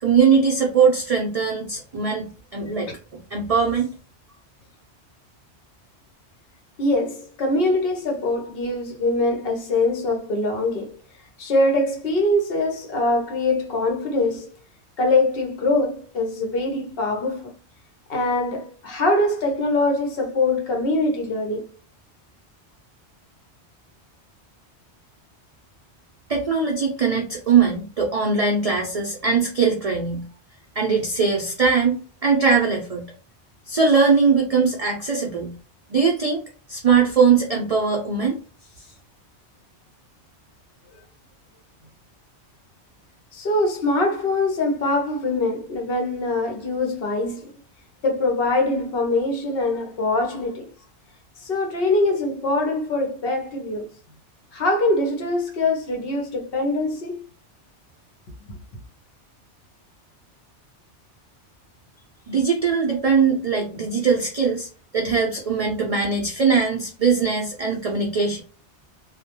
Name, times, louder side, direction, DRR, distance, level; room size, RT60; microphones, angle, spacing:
voice 1, 0.0-2.2 2.5-2.9 3.3-3.9 26.3-30.3 30.8-33.1 33.7-35.5 35.9-36.4 36.7-38.4 62.3-68.4, right 5 dB, 70° right, 0.3 m, -20 dB
voice 2, 6.8-11.0 11.4-14.5 15.0-17.4 18.1-21.6 43.3-47.5 48.0-50.6 51.4-53.9 54.5-57.2 58.5-58.6, left 2 dB, 60° left, 0.8 m, -23 dB
2.2 x 2.1 x 2.8 m
omnidirectional pair, 1.2 m